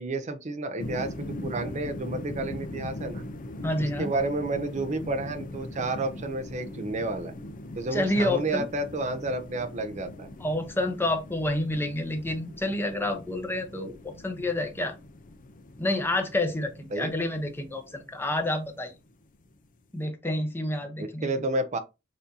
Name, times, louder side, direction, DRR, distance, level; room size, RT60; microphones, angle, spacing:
voice 1, 0.0-3.2 3.8-7.3 7.7-10.3 16.9-17.1 21.0-21.8, right 2 dB, 35° right, 0.5 m, -31 dB
sound 1, 0.8-19.7, left 1 dB, 45° left, 0.5 m, -41 dB
voice 2, 3.6-4.1 7.9-8.7 10.4-15.0 15.8-18.9 19.9-21.3, left 1 dB, 10° left, 0.8 m, -29 dB
6.6 x 2.6 x 2.7 m
head